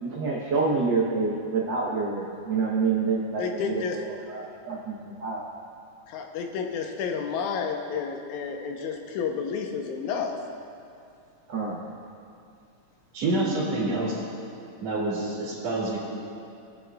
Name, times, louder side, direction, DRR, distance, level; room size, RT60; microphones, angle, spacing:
voice 1, 0.0-5.4 11.5-11.8, right 4 dB, 85° right, -4 dB, 1.0 m, -27 dB
voice 2, 3.4-4.0 6.1-10.3, left 6 dB, 85° left, 3 dB, 2.2 m, -30 dB
voice 3, 13.1-14.2 14.8-16.0, right 2 dB, 60° right, -11 dB, 3.0 m, -27 dB
18.5 x 8.4 x 2.3 m, 2.5 s
omnidirectional pair, 3.4 m